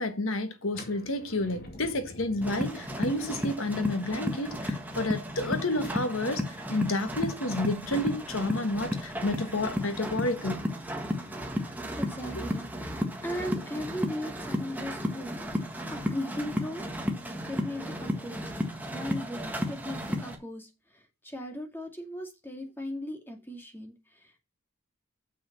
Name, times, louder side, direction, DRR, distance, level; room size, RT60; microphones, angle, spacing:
voice 1, 0.0-10.6 12.3-12.4, left 2 dB, 65° left, 1.4 m, -30 dB
sound 1, 0.7-6.5, left 1 dB, 45° left, 2.4 m, -49 dB
sound 2, 2.4-20.3, equal, 10° right, 1.5 m, -34 dB
voice 2, 12.0-12.7 12.9-16.9 17.5-18.5 18.9-24.4, left 1 dB, 10° left, 2.1 m, -38 dB
6.9 x 6.2 x 5.8 m
head